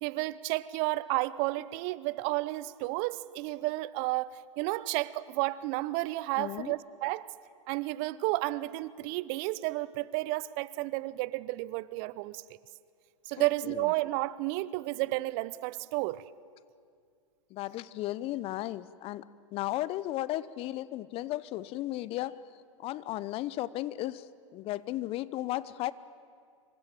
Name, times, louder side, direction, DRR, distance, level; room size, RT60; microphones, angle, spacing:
voice 1, 0.0-7.3 7.7-12.4 13.3-16.2, right 19 dB, 45° right, 0.8 m, -32 dB
voice 2, 6.4-6.7 13.4-13.9 17.5-19.2 19.5-22.4 22.8-24.2 24.5-25.9, left 15 dB, 35° left, 0.9 m, -35 dB
26.5 x 24.5 x 9.1 m
hypercardioid pair, 105°, 16 cm